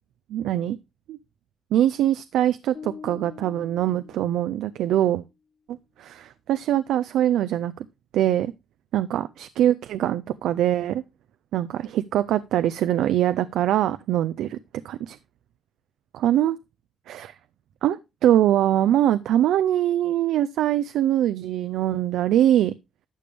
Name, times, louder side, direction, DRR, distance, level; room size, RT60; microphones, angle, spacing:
voice 1, 0.3-0.8 1.1-1.2 1.7-5.2 6.0-7.7 8.1-8.5 8.9-11.0 11.5-14.6 14.8-15.2 16.1-16.6 17.1-17.3 17.8-22.7, right 12 dB, 80° right, 0.4 m, -23 dB
sound 1, 2.7-4.9, left 6 dB, 75° left, 4.2 m, -44 dB
11.5 x 6.9 x 3.4 m
cardioid pair, 90°, 0 cm